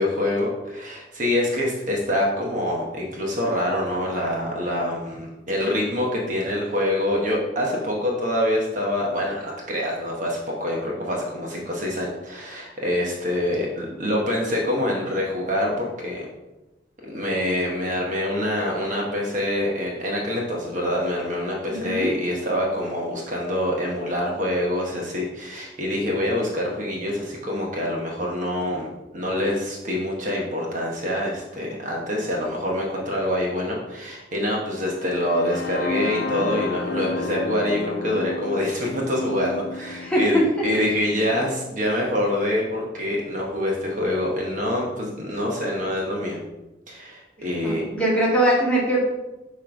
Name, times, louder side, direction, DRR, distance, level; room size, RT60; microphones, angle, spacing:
voice 1, 0.0-16.2 17.0-46.4 46.9-47.9, left 1 dB, 40° right, -2 dB, 1.1 m, -25 dB
voice 2, 21.7-22.1 40.0-40.2 47.6-49.1, right 1 dB, 5° left, -7 dB, 1.8 m, -22 dB
sound 1, 34.9-42.8, left 3 dB, 55° left, 0.5 m, -33 dB
7.4 x 3.2 x 5.1 m, 1.0 s
head